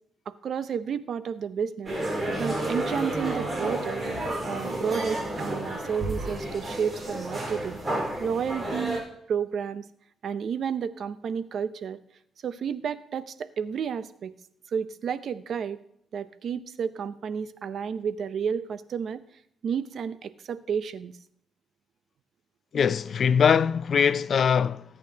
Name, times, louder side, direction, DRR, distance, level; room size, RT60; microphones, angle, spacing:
voice 1, 0.3-1.9 2.4-4.0 4.4-7.8 8.2-9.0 9.3-9.8 10.2-12.0 12.4-14.3 14.7-15.8 16.1-19.2 19.6-21.1, right 7 dB, 60° right, 0.7 m, -31 dB
sound 1, 1.9-9.0, right 1 dB, 30° right, 4.3 m, -31 dB
voice 2, 22.7-24.8, left 7 dB, 50° left, 0.4 m, -22 dB
20.0 x 8.6 x 2.8 m
cardioid pair, 90°, 0 cm